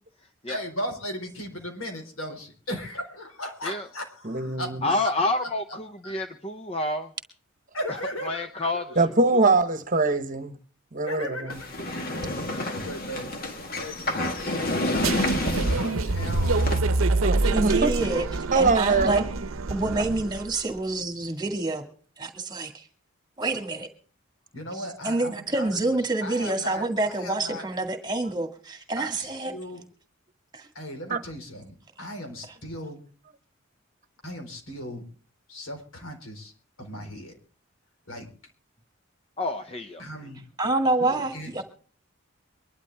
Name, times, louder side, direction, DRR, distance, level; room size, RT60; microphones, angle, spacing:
voice 1, 0.5-4.7 5.0-5.1 5.4-6.1 7.7-9.0 11.0-11.7 12.5-13.3 13.8-16.5 24.5-25.8 26.2-27.6 29.0-29.8 30.7-33.0 34.2-35.0 35.5-36.5 36.8-37.4 38.1-38.3 40.0-40.4 41.0-41.6, equal, 90° left, 4.2 m, -37 dB
voice 2, 4.2-4.9 9.0-10.6 10.9-11.6 17.2-17.9 18.5-19.2 31.1-31.2, right 3 dB, 40° right, 1.1 m, -23 dB
voice 3, 4.8-7.1 8.2-8.9 39.4-40.0, left 2 dB, 30° left, 0.8 m, -28 dB
sound 1, 11.5-16.8, left 1 dB, 45° left, 1.9 m, -29 dB
sound 2, 15.0-20.5, right 3 dB, 80° right, 0.8 m, -26 dB
voice 4, 17.4-19.2 19.7-21.8 22.2-22.9 23.4-23.9 24.7-29.5 30.5-30.7 40.6-41.6, right 2 dB, 20° right, 2.0 m, -27 dB
23.5 x 11.5 x 3.5 m
head